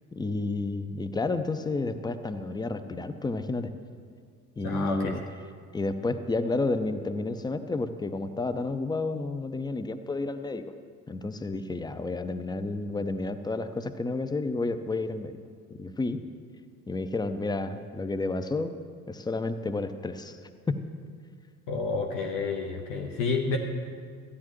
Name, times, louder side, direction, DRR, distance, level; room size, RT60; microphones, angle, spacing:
voice 1, 0.1-3.7 4.6-5.2 5.7-10.7 11.1-15.4 15.8-16.2 16.9-18.7 19.1-20.4 20.7-20.8, left 3 dB, 10° left, 10 dB, 0.5 m, -31 dB
voice 2, 4.6-5.1 21.7-23.6, left 4 dB, 50° left, 2 dB, 1.0 m, -29 dB
15.0 x 9.7 x 3.1 m, 2.1 s
figure-of-eight pair, 55°, 42 cm